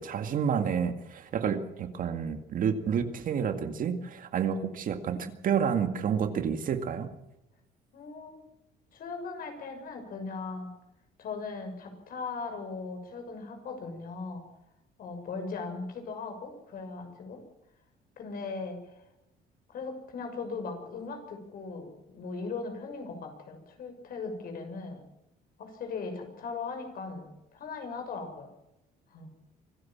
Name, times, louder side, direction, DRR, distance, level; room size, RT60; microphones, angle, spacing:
voice 1, 0.0-7.1, right 7 dB, 55° right, 8 dB, 2.1 m, -29 dB
voice 2, 7.9-8.4 8.9-10.7 11.2-14.4 15.0-17.4 18.2-18.9 19.7-25.0 25.6-28.5 29.1-29.3, left 4 dB, 60° left, 5 dB, 6.6 m, -38 dB
25.0 x 14.5 x 7.3 m, 0.87 s
cardioid pair, 110°, 17 cm